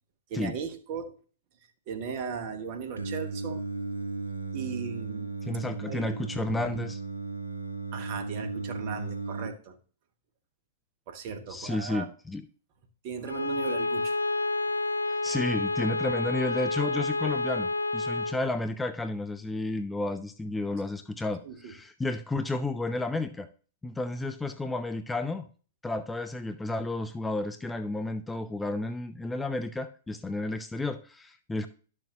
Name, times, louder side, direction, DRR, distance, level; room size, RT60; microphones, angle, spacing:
voice 1, 0.3-1.1 1.9-3.6 4.5-5.3 5.9-6.2 7.9-9.8 11.1-12.1 13.0-14.2 21.4-21.7, right 6 dB, 45° right, 7 dB, 1.2 m, -37 dB
Singing, 3.0-9.5, right 3 dB, 75° right, 0.8 m, -35 dB
voice 2, 5.4-7.0 11.5-12.5 15.1-23.5 23.8-25.5 25.8-31.7, left 2 dB, 10° left, 9 dB, 0.4 m, -32 dB
Bowed string instrument, 13.2-18.4, left 3 dB, 80° left, 0.3 m, -29 dB
11.5 x 6.4 x 2.8 m, 0.39 s
figure-of-eight pair, 100°, 0 cm